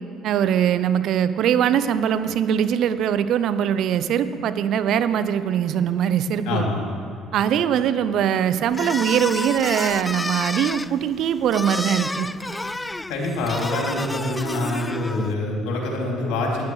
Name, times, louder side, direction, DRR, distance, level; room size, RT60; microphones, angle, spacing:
voice 1, 0.2-6.7 7.3-12.3, right 9 dB, 65° right, 12 dB, 0.6 m, -22 dB
voice 2, 6.4-6.8 13.1-16.7, left 2 dB, 70° left, -1 dB, 3.1 m, -25 dB
sound 1, 8.7-15.3, left 2 dB, 15° left, 0.4 m, -30 dB
12.5 x 10.5 x 4.9 m, 2.8 s
hypercardioid pair, 60°, 0 cm